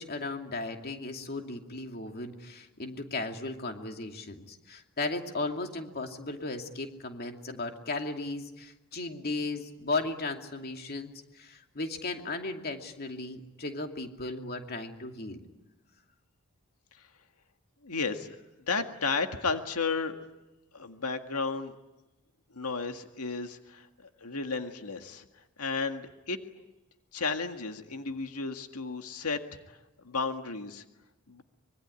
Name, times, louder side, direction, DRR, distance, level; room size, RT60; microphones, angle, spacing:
voice 1, 0.0-15.4, left 2 dB, 45° left, 4 dB, 2.6 m, -36 dB
voice 2, 17.8-18.4 18.7-20.2 20.7-21.7 22.5-23.9 24.2-25.2 25.6-26.4 27.1-29.4 29.7-29.8 30.0-30.8 31.3-31.4, left 4 dB, 85° left, 6 dB, 1.9 m, -33 dB
25.0 x 22.5 x 9.8 m, 1.0 s
head